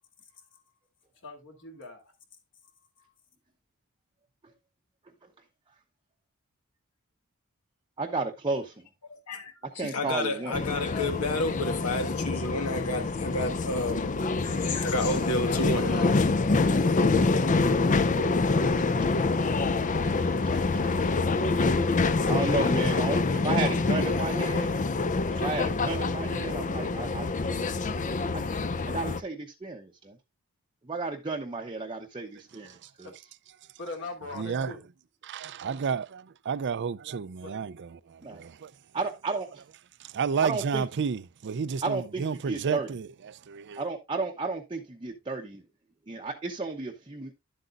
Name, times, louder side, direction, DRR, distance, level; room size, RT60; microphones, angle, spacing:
voice 1, 1.2-2.0 33.0-33.1 33.8-34.8 37.4-37.6, left 2 dB, 55° left, 2.6 m, -40 dB
voice 2, 8.0-8.7 9.7-10.6 18.1-18.4 19.3-19.5 20.1-21.2 21.7-24.8 25.3-27.6 28.3-28.4 28.9-30.2 30.8-33.1 38.2-38.4 38.9-39.5 40.4-40.8 41.8-42.9 43.8-45.6 46.1-47.3, right 3 dB, 20° right, 0.8 m, -33 dB
voice 3, 9.3-14.1 14.4-16.1, left 2 dB, 80° left, 1.6 m, -31 dB
sound 1, 10.5-29.2, left 3 dB, 35° left, 0.5 m, -26 dB
voice 4, 34.4-34.7 35.2-38.7 40.0-43.8, right 6 dB, 50° right, 0.4 m, -32 dB
11.0 x 7.8 x 2.5 m
head